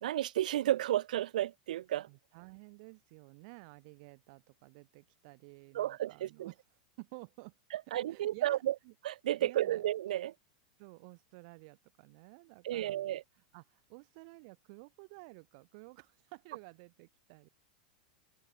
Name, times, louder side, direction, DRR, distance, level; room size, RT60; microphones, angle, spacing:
voice 1, 0.0-2.1 5.7-6.5 7.7-8.7 9.0-10.3 12.6-13.2, right 13 dB, 80° right, 0.9 m, -32 dB
voice 2, 2.1-6.6 7.0-7.6 7.9-8.9 9.4-9.9 10.8-17.5, right 31 dB, 55° right, 7.2 m, -53 dB
open air
supercardioid pair, 130°, 4 cm